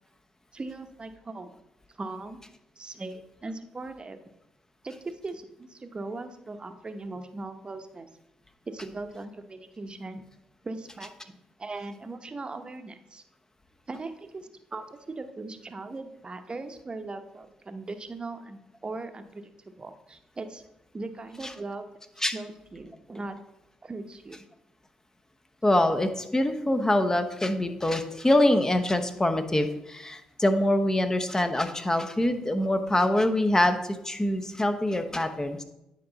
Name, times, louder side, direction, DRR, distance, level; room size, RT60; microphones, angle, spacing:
voice 1, 0.5-1.6 1.9-2.4 2.8-4.2 4.8-8.1 8.7-10.2 10.6-11.3 11.6-13.2 13.9-20.6 20.9-21.9 22.3-23.4 23.8-24.4, right 3 dB, 35° right, 8 dB, 0.9 m, -39 dB
voice 2, 25.6-35.6, left 1 dB, 20° left, 7 dB, 0.9 m, -24 dB
9.6 x 4.6 x 4.0 m, 0.87 s
hypercardioid pair, 50°, 3 cm